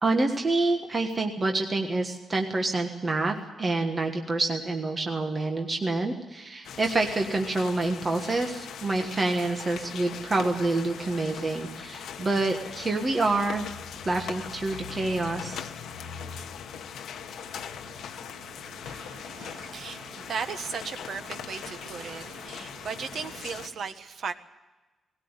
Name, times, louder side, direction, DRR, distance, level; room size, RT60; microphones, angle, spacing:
voice 1, 0.0-13.7 14.0-15.6, right 2 dB, 20° right, 3 dB, 1.4 m, -27 dB
sound 1, 6.6-23.7, left 8 dB, 75° left, 0.9 m, -40 dB
sound 2, 10.8-23.7, right 5 dB, 75° right, 3.0 m, -50 dB
voice 2, 19.7-24.3, right 6 dB, 50° right, 8 dB, 1.3 m, -36 dB
20.0 x 16.5 x 8.1 m, 1.1 s
wide cardioid pair, 175°, 0 cm